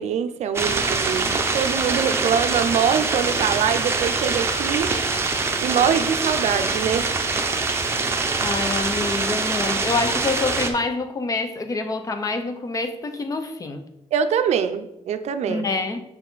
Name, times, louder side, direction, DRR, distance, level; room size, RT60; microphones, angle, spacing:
voice 1, 0.0-5.0 5.6-7.1 14.1-15.7, right 7 dB, 70° right, 9 dB, 0.6 m, -23 dB
sound 1, 0.5-10.7, right 3 dB, 20° right, 0.7 m, -24 dB
voice 2, 8.4-13.9 15.5-16.0, left 3 dB, 30° left, 7 dB, 0.7 m, -26 dB
6.6 x 5.7 x 4.0 m, 0.85 s
wide cardioid pair, 170°, 12 cm